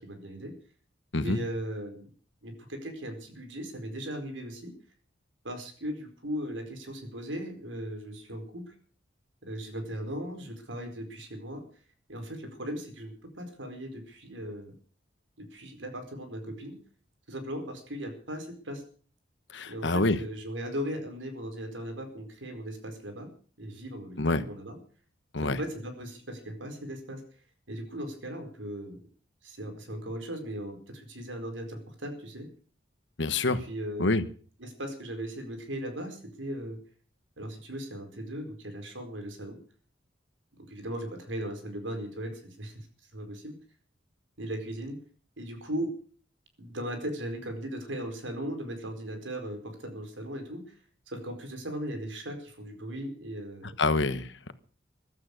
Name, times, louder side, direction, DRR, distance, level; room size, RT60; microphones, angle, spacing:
voice 1, 0.0-0.5 1.2-2.1 2.4-4.7 5.4-8.7 9.4-11.6 12.1-14.7 15.5-16.8 17.3-18.8 19.7-23.3 23.6-24.8 25.5-27.2 27.7-29.0 29.4-32.5 33.4-34.1 34.6-36.8 37.4-39.6 40.6-42.8 43.1-43.5 44.4-45.0 45.4-45.9 46.6-50.6 51.1-53.7, equal, 90° right, 6 dB, 4.7 m, -38 dB
voice 2, 19.5-20.2 24.2-24.4 25.3-25.6 33.2-33.6 34.0-34.2 53.8-54.5, left 2 dB, 70° left, 12 dB, 1.3 m, -26 dB
15.5 x 12.5 x 6.6 m, 0.44 s
head